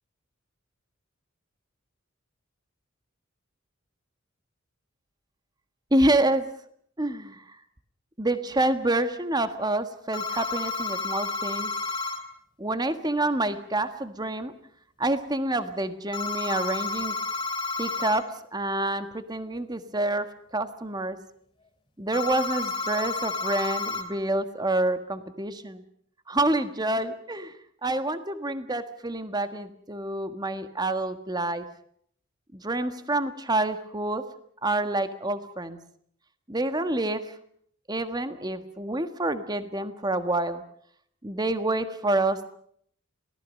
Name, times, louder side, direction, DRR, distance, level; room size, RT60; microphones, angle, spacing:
voice 1, 5.9-6.5 7.0-7.4 8.2-11.7 12.6-14.5 15.0-17.2 17.8-21.2 22.0-25.8 26.3-27.5 27.8-31.6 32.5-34.2 34.6-35.8 36.5-37.2 37.9-40.6 41.2-42.5, right 2 dB, 20° right, 10 dB, 1.5 m, -27 dB
sound 1, 10.1-12.2 16.1-18.2 22.1-24.0, left 3 dB, 25° left, 4.1 m, -31 dB
27.0 x 18.5 x 6.5 m, 0.63 s
head